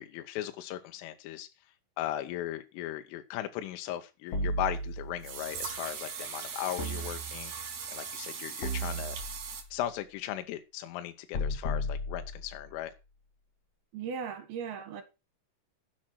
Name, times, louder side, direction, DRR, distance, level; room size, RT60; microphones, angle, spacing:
voice 1, 0.0-1.5 2.0-9.2 9.7-12.9, left 12 dB, 90° left, 3.4 m, -37 dB
sound 1, 4.3-5.4 6.8-7.8 8.6-9.7 11.3-12.8, equal, 50° left, 2.1 m, -35 dB
sound 2, 4.4-4.5 5.2-9.6, right 6 dB, 45° right, 3.3 m, -40 dB
voice 2, 13.9-15.0, right 6 dB, 60° right, 3.2 m, -37 dB
10.5 x 7.5 x 5.9 m
omnidirectional pair, 5.6 m